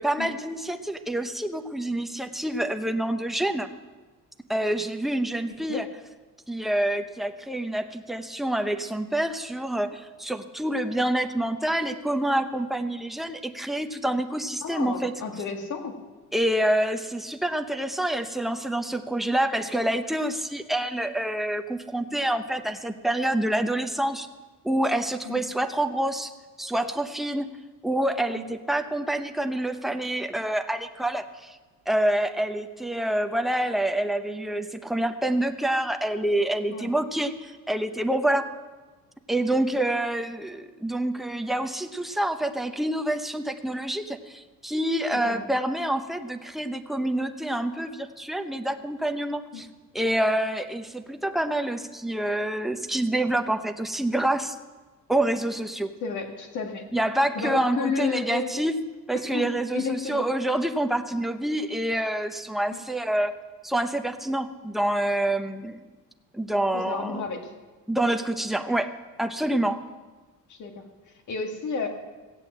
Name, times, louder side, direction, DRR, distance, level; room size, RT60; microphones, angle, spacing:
voice 1, 0.0-3.7 4.5-5.9 6.5-15.1 16.3-24.3 24.6-26.3 26.6-27.5 27.8-31.6 31.9-38.5 39.3-49.7 49.9-54.6 55.1-56.0 56.9-58.7 59.1-63.3 63.6-65.8 66.3-67.3 67.9-69.9, right 1 dB, ahead, 6 dB, 0.7 m, -27 dB
voice 2, 14.6-15.9 25.2-25.4 28.4-28.5 36.7-36.9 45.1-45.4 49.5-49.7 56.0-56.8 57.4-58.5 59.3-60.2 66.7-67.5 70.5-70.8 71.3-71.9, left 5 dB, 60° left, 4 dB, 2.1 m, -31 dB
16.5 x 8.3 x 7.4 m, 1.3 s
cardioid pair, 140°, 33 cm